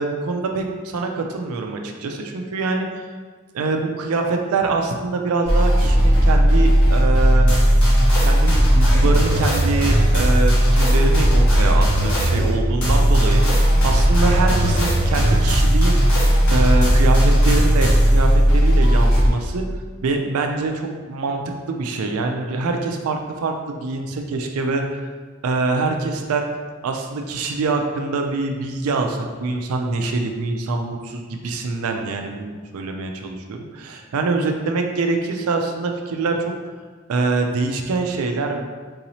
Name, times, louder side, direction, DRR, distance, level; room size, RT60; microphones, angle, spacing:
voice 1, 0.0-3.0 3.5-7.5 8.2-15.9 16.5-19.6 20.0-21.4 21.7-25.0 25.4-26.5 26.8-36.5 37.1-38.6, right 3 dB, 85° right, 3 dB, 0.4 m, -24 dB
sound 1, 5.5-19.3, equal, 75° left, 1.1 m, -16 dB
3.8 x 2.9 x 2.7 m, 1.4 s
head